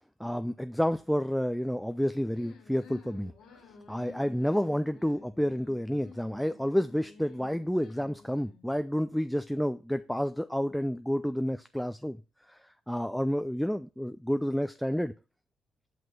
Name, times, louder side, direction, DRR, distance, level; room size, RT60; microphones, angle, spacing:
voice 1, 0.2-3.3 3.9-12.2 12.5-15.1, equal, ahead, 0.4 m, -30 dB
sound 1, 2.3-8.7, left 4 dB, 85° left, 2.0 m, -53 dB
5.9 x 5.3 x 4.0 m
cardioid pair, 90°, 0 cm